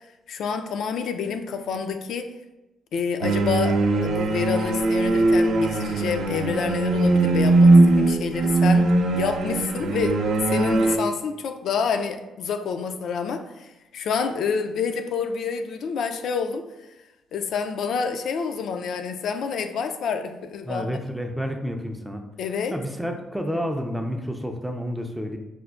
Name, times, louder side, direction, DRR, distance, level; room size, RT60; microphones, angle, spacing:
voice 1, 0.0-2.3 2.9-16.9 17.3-20.8 22.4-22.8, left 6 dB, 70° left, 7 dB, 0.3 m, -28 dB
sound 1, 3.2-11.0, right 2 dB, 75° right, 0.4 m, -20 dB
voice 2, 20.6-22.3 22.7-25.4, equal, 5° right, 4 dB, 0.4 m, -30 dB
4.8 x 2.1 x 2.3 m, 1.0 s
cardioid pair, 90°, 0 cm